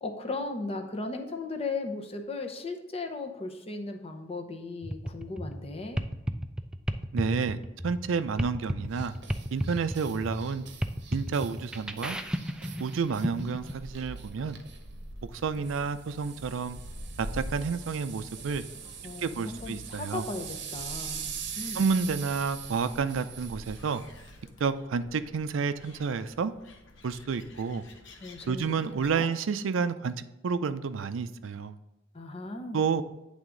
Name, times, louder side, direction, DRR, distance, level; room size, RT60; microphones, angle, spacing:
voice 1, 0.0-6.0 13.4-13.5 19.0-21.8 28.2-29.3 32.1-33.0, left 3 dB, 30° left, 4 dB, 0.8 m, -37 dB
sound 1, 4.8-13.7, equal, 5° right, 0.3 m, -34 dB
voice 2, 7.1-9.1 9.5-10.6 11.1-12.2 12.8-14.6 15.2-16.8 17.2-18.6 19.2-20.2 21.7-24.0 24.6-26.5 27.0-27.8 28.5-30.1 30.4-31.8 32.7-33.0, right 5 dB, 90° right, 12 dB, 0.4 m, -30 dB
sound 2, 8.9-24.4, right 7 dB, 60° right, 0.8 m, -43 dB
Gull seagull, 13.4-29.1, left 1 dB, 70° left, 0.9 m, -47 dB
9.1 x 3.5 x 3.8 m, 0.98 s
head